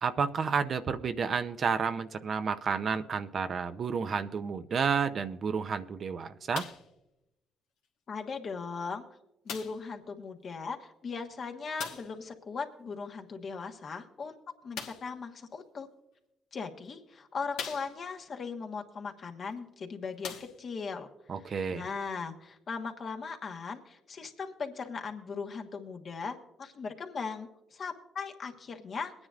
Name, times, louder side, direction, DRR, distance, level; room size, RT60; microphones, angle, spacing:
voice 1, 0.0-6.6 21.3-21.9, right 6 dB, 55° right, 9 dB, 0.7 m, -31 dB
sound 1, 6.5-6.9 7.8-7.9 9.5-9.9 11.8-12.2 14.7-15.2 16.1-16.2 16.8-16.9 17.5-18.2 19.5-19.6 20.1-20.9 21.7-21.8, left 6 dB, 85° left, 1.2 m, -41 dB
voice 2, 8.1-9.0 9.4-15.9 16.5-21.1 21.4-29.1, left 5 dB, 55° left, 4 dB, 1.3 m, -38 dB
22.0 x 9.7 x 2.5 m, 0.90 s
supercardioid pair, 60°, 0 cm